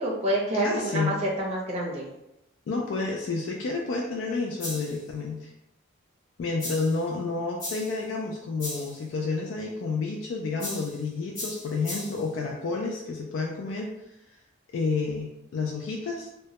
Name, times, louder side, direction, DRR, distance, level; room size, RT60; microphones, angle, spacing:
voice 1, 0.0-2.0, right 1 dB, 35° right, -3 dB, 0.6 m, -27 dB
voice 2, 0.6-1.1 2.7-5.5 6.4-13.9 14.7-16.3, left 4 dB, 75° left, 0 dB, 0.3 m, -30 dB
sound 1, 4.6-5.0 6.6-7.0 7.6-8.0 8.6-9.0 10.6-11.0 11.3-12.3, left 1 dB, 45° left, 1.0 m, -37 dB
2.2 x 2.1 x 2.8 m, 0.86 s
head